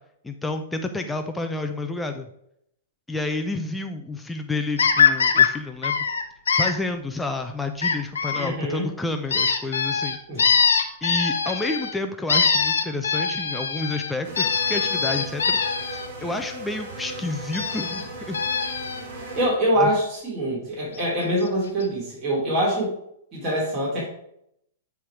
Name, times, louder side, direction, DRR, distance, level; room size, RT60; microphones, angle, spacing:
voice 1, 0.2-2.3 3.1-6.0 6.5-10.2 10.6-10.7 11.0-15.6 15.9-18.4 19.8-19.9, left 2 dB, 10° left, 5 dB, 0.6 m, -30 dB
sound 1, 4.8-5.5 5.8-6.7 7.8-8.5 9.3-11.9 12.3-16.1 17.5-18.0 18.3-19.0 21.0-21.1 21.4-21.5 21.8-21.9, left 6 dB, 80° left, 1.0 m, -22 dB
voice 2, 8.3-8.9 10.3-10.5 19.4-22.9 23.3-24.1, equal, 25° right, -6 dB, 3.2 m, -24 dB
sound 2, 14.2-19.5, right 1 dB, 55° right, 2.7 m, -37 dB
9.7 x 3.5 x 4.6 m, 0.74 s
hypercardioid pair, 115°, 0 cm